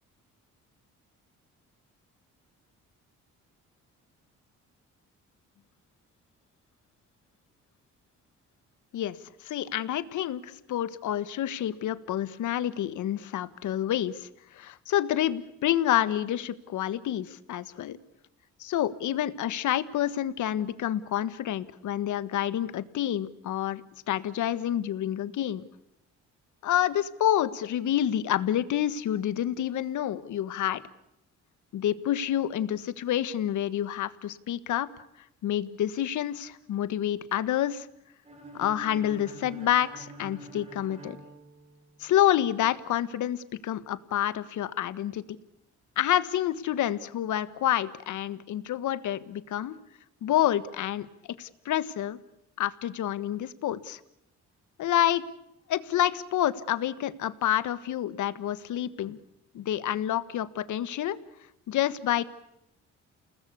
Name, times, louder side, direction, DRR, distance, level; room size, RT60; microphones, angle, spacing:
voice 1, 8.9-14.3 14.5-18.0 18.6-25.7 26.6-30.8 31.7-34.9 35.4-37.9 38.5-41.2 42.0-45.2 46.0-49.8 50.2-51.1 51.4-52.2 52.6-54.0 54.8-55.2 55.7-59.2 59.5-61.2 61.7-62.2, left 11 dB, 75° left, 15 dB, 1.6 m, -28 dB
sound 1, 38.3-42.2, right 2 dB, 20° right, 6.4 m, -46 dB
29.5 x 19.5 x 8.3 m, 0.83 s
cardioid pair, 90°, 30 cm